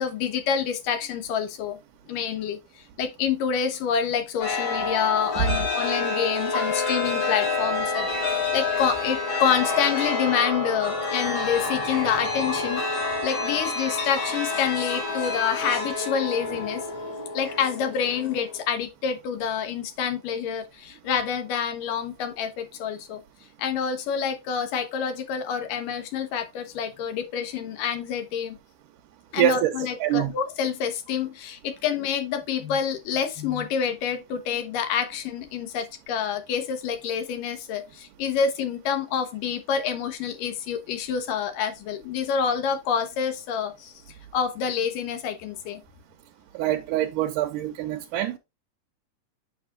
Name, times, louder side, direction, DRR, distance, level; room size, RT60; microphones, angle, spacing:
voice 1, 0.0-1.8 2.1-12.8 13.2-16.9 17.3-23.2 23.6-28.6 29.3-43.9 44.3-45.8, left 7 dB, 85° left, 2.8 m, -27 dB
Chime, 4.4-18.6, left 3 dB, 65° left, 4.8 m, -28 dB
voice 2, 29.4-29.7 30.0-30.3 46.5-48.4, right 13 dB, 90° right, 2.3 m, -24 dB
8.5 x 5.9 x 2.4 m
omnidirectional pair, 3.7 m